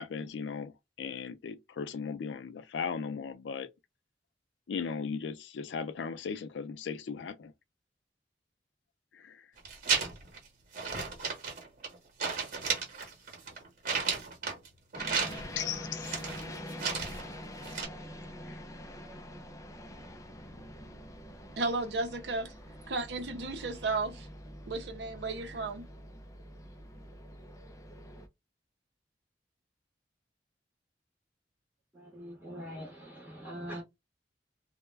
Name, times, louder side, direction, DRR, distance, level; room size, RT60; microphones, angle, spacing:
voice 1, 0.0-3.7 4.7-7.5 9.1-9.5 15.6-16.1 18.4-18.6, left 6 dB, 90° left, 0.4 m, -37 dB
sound 1, 9.6-10.4 10.7-11.9 12.2-14.7 14.9-15.7 16.0-17.3 17.6-17.9, right 5 dB, 55° right, 1.1 m, -33 dB
sound 2, 15.0-28.3, left 1 dB, 20° left, 0.4 m, -45 dB
voice 2, 21.6-22.5 22.9-24.3 24.7-25.9, right 3 dB, 70° right, 0.6 m, -33 dB
voice 3, 31.9-33.8, equal, 10° right, 0.9 m, -43 dB
2.2 x 2.1 x 3.2 m
head